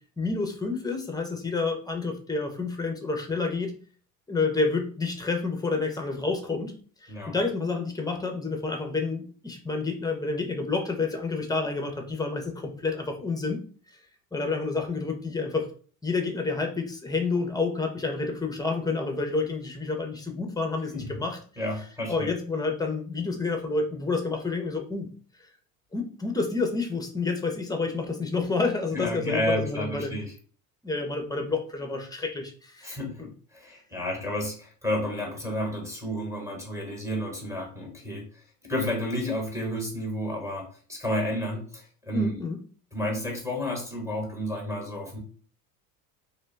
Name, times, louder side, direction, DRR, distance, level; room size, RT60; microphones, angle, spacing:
voice 1, 0.2-3.7 4.3-6.7 7.0-13.6 14.3-15.7 16.0-21.4 22.1-25.1 25.9-30.1 30.8-33.3 42.1-42.6, left 3 dB, 10° left, 4 dB, 0.6 m, -29 dB
voice 2, 21.6-22.3 28.9-30.3 32.8-42.4 42.9-45.2, left 1 dB, 5° right, 1 dB, 1.1 m, -31 dB
2.6 x 2.2 x 3.2 m, 0.42 s
hypercardioid pair, 85°, 44 cm